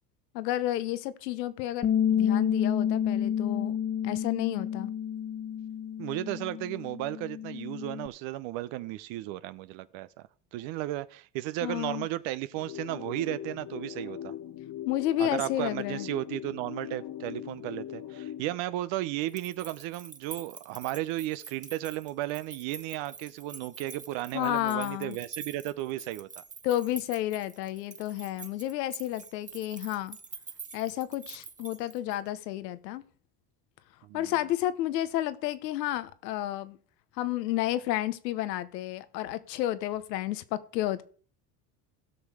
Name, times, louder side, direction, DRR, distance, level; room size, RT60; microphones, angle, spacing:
voice 1, 0.3-3.8 4.0-4.9 11.6-12.1 14.8-16.1 24.3-25.2 26.6-30.2 30.7-33.0 34.1-36.8 37.2-41.0, left 14 dB, 90° left, 1.1 m, -31 dB
Bass guitar, 1.8-8.1, left 9 dB, 25° left, 0.5 m, -29 dB
voice 2, 6.0-10.1 10.5-14.3 15.2-26.4 34.0-34.3, right 15 dB, 65° right, 0.8 m, -34 dB
sound 1, 12.6-18.6, left 11 dB, 40° left, 0.9 m, -40 dB
sound 2, 19.2-32.3, right 4 dB, 15° right, 1.1 m, -46 dB
16.0 x 6.4 x 4.9 m
supercardioid pair, 85°, 48 cm